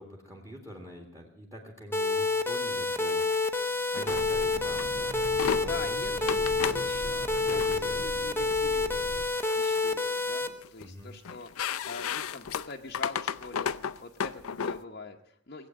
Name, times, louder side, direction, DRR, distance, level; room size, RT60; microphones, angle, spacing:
voice 1, 0.0-3.6 3.9-6.9 7.5-8.1 10.8-11.1, equal, 15° right, 2 dB, 2.0 m, -45 dB
sound 1, 1.9-10.5, left 3 dB, 10° left, 0.8 m, -28 dB
sound 2, 3.9-4.3 4.8-4.9 5.2-5.6 6.3-6.8 7.4-7.7 8.5-8.7 9.2-9.9 10.2-10.8 11.2-14.8, left 7 dB, 75° left, 0.5 m, -34 dB
sound 3, 4.1-9.2, equal, 45° right, 1.4 m, -41 dB
voice 2, 5.7-9.0 9.4-15.7, left 4 dB, 45° left, 0 dB, 0.9 m, -44 dB
18.5 x 8.3 x 8.8 m, 0.74 s
head